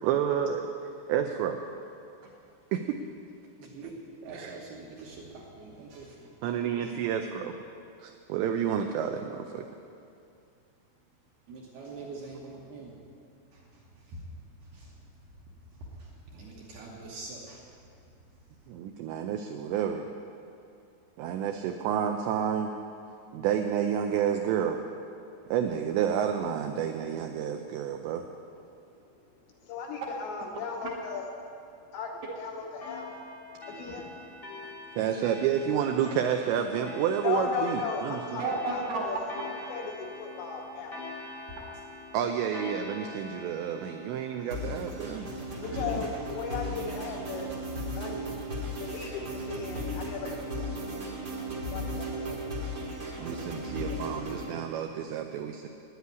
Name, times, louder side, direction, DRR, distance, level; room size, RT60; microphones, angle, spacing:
voice 1, 0.0-0.7 1.1-1.6 2.7-3.0 4.3-4.6 6.4-7.6 8.0-9.7 18.7-20.1 21.2-22.7 23.3-24.8 25.5-28.3 35.0-38.4 42.1-45.3 45.6-46.1 53.2-55.7, right 8 dB, 90° right, 5 dB, 2.5 m, -30 dB
voice 2, 3.6-3.9 4.2-6.3 11.5-13.0 13.5-14.2 14.6-14.9 15.7-17.8 30.8-30.9 38.4-39.1 41.5-41.8 53.3-53.5, right 3 dB, 70° right, -2 dB, 2.5 m, -39 dB
voice 3, 29.6-31.2 31.9-32.1 32.4-33.1 33.7-34.1 34.6-34.7 37.2-38.4 38.7-38.8 39.1-39.2 39.7-41.0 45.6-47.5 47.9-48.2 48.8-50.4 51.7-52.4, left 5 dB, 75° left, 0 dB, 2.7 m, -36 dB
sound 1, 32.8-45.9, left 3 dB, 35° left, 0.8 m, -45 dB
sound 2, 44.5-54.5, equal, 55° right, 1.2 m, -36 dB
10.0 x 9.7 x 9.4 m, 2.5 s
omnidirectional pair, 5.8 m